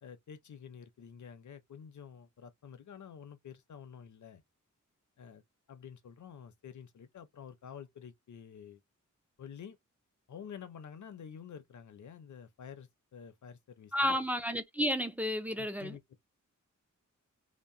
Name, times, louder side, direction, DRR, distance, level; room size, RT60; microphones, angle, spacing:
voice 1, 0.0-4.4 5.2-5.4 5.7-8.8 9.4-9.8 10.3-14.2 15.6-16.2, left 7 dB, 65° left, 0.6 m, -49 dB
voice 2, 13.9-16.0, equal, 5° right, 0.4 m, -32 dB
2.8 x 2.1 x 2.6 m
wide cardioid pair, 125°, 31 cm